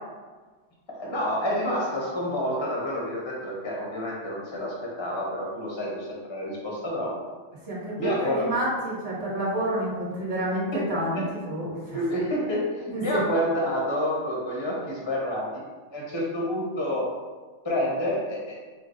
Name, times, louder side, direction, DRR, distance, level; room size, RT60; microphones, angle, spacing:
voice 1, 0.9-7.2 8.0-8.5 10.7-10.8 11.1-11.2 11.9-15.6 15.9-17.1 17.6-18.6, equal, 25° left, -4 dB, 0.8 m, -28 dB
voice 2, 7.6-12.0 12.9-13.2, right 1 dB, 45° right, -6 dB, 1.6 m, -29 dB
4.8 x 2.3 x 3.8 m, 1.4 s
omnidirectional pair, 1.4 m